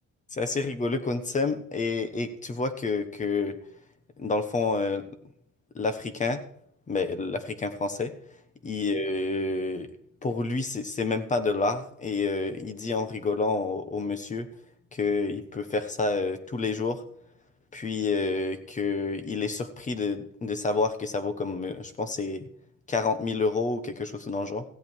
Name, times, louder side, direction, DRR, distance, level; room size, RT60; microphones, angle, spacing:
voice 1, 0.3-3.5 4.2-5.0 5.7-6.4 6.9-8.1 8.6-9.9 10.2-14.5 14.9-17.0 17.7-22.5 22.9-24.6, left 3 dB, 25° left, 10 dB, 1.2 m, -29 dB
15.5 x 8.4 x 4.6 m, 0.67 s
cardioid pair, 170°, 32 cm